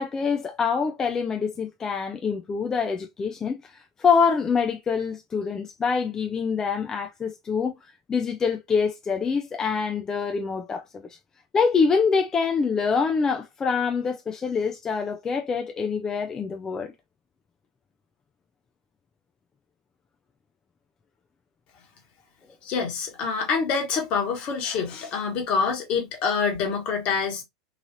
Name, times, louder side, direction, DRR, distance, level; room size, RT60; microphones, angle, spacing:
voice 1, 0.0-11.2 11.5-16.9, left 5 dB, 20° left, 0.3 m, -25 dB
voice 2, 22.6-27.4, left 5 dB, 45° left, 1.3 m, -26 dB
3.1 x 2.4 x 2.7 m
hypercardioid pair, 100°, 3 cm